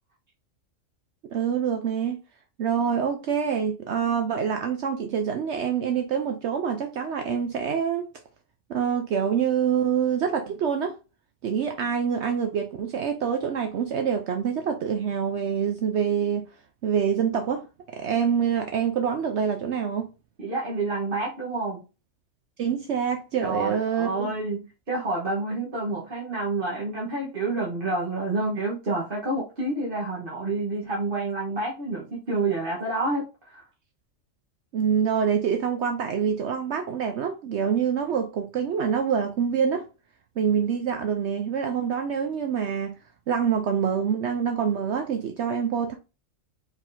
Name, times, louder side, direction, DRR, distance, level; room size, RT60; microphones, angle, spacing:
voice 1, 1.3-2.2 2.6-8.1 8.7-11.0 11.4-16.5 16.8-17.7 17.9-20.1 22.6-24.3 34.7-39.9 40.4-43.0 43.3-45.9, right 7 dB, 65° right, 0.9 m, -26 dB
voice 2, 20.4-21.8 23.4-33.2 33.5-33.6, right 2 dB, 45° right, 1.4 m, -28 dB
4.5 x 4.0 x 2.6 m
omnidirectional pair, 1.3 m